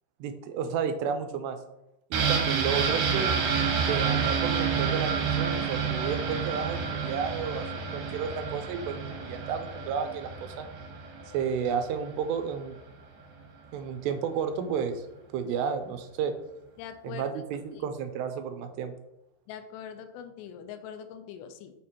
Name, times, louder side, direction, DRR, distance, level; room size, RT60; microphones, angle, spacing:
voice 1, 0.2-1.6 2.1-3.4 3.9-7.7 7.9-10.7 11.3-12.8 13.7-15.0 15.3-16.3 17.0-18.9, right 7 dB, 85° right, 8 dB, 2.8 m, -32 dB
sound 1, 2.1-11.7 12.1-12.2, right 6 dB, 65° right, 2.3 m, -29 dB
voice 2, 16.8-17.3 17.7-17.8 19.5-21.7, left 8 dB, 85° left, 8 dB, 2.7 m, -42 dB
6.6 x 6.3 x 2.9 m, 0.87 s
omnidirectional pair, 4.9 m